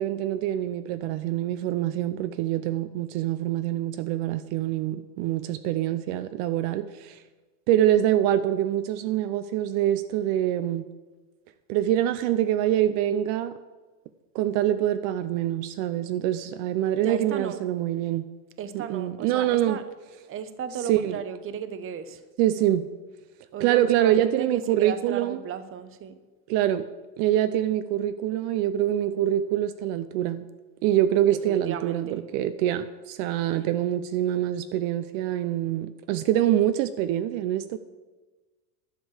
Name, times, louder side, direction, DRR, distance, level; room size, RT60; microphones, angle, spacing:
voice 1, 0.0-7.2 7.7-10.8 11.7-13.5 14.3-18.3 18.7-19.8 20.9-21.2 22.4-22.8 23.6-25.4 26.5-26.9 27.2-30.4 30.8-32.1 32.3-37.8, right 12 dB, 55° right, 11 dB, 0.7 m, -25 dB
voice 2, 17.0-17.6 18.6-19.8 20.3-22.2 23.5-26.2 31.2-32.3, right 8 dB, 25° right, 12 dB, 0.8 m, -35 dB
11.5 x 5.2 x 8.0 m, 1.3 s
supercardioid pair, 115°, 48 cm